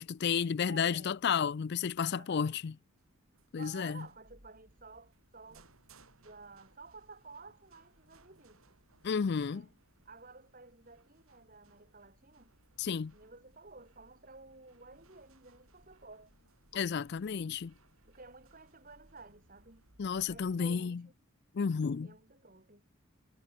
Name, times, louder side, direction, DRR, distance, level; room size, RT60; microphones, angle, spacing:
voice 1, 0.0-2.7 3.5-4.0 9.0-9.7 12.8-13.1 16.7-17.7 20.0-21.0 21.5-22.1, left 6 dB, 50° left, 0.4 m, -32 dB
voice 2, 0.6-1.1 2.1-2.6 3.5-5.7 6.2-8.6 9.5-9.8 10.0-12.5 13.1-16.3 18.1-19.8 20.2-21.1 22.0-22.8, right 3 dB, 40° right, 4.7 m, -54 dB
sound 1, 3.0-20.6, right 2 dB, 70° right, 6.9 m, -65 dB
head